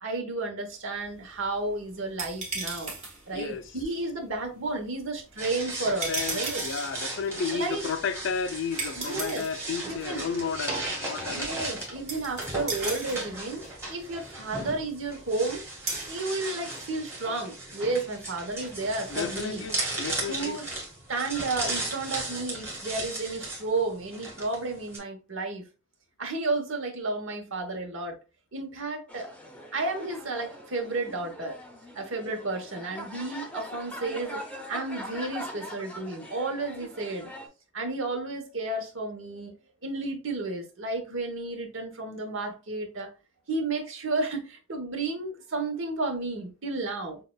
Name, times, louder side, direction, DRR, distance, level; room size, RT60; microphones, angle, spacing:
voice 1, 0.0-2.9 3.3-6.6 7.5-7.8 9.0-9.4 9.9-10.3 11.3-13.6 13.9-15.6 16.1-19.6 20.3-20.7 21.1-25.7 26.2-28.2 28.5-29.3 29.7-31.6 31.9-34.4 34.7-37.3 37.7-39.5 39.8-43.1 43.5-47.2, right 2 dB, 65° right, 1.1 m, -32 dB
sound 1, 0.9-16.2, right 3 dB, 35° right, 1.4 m, -40 dB
voice 2, 3.3-3.7 6.1-11.5 19.1-20.6, left 5 dB, 60° left, 0.4 m, -32 dB
sound 2, 5.4-25.0, right 2 dB, 15° right, 1.6 m, -36 dB
sound 3, 29.1-37.5, left 1 dB, 5° left, 0.7 m, -42 dB
6.4 x 2.4 x 2.3 m
head